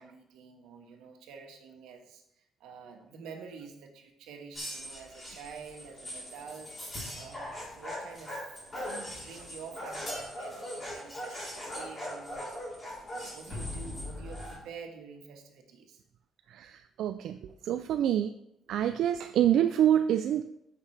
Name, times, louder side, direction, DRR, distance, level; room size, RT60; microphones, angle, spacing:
voice 1, 0.0-2.2 2.6-12.6 13.1-16.0, right 5 dB, 90° right, 3 dB, 1.5 m, -48 dB
sound 1, 4.5-14.6, left 1 dB, 20° left, 3.7 m, -40 dB
voice 2, 16.5-18.3 18.7-20.4, right 10 dB, 65° right, 9 dB, 0.4 m, -27 dB
14.0 x 5.7 x 3.3 m, 0.80 s
cardioid pair, 140°, 0 cm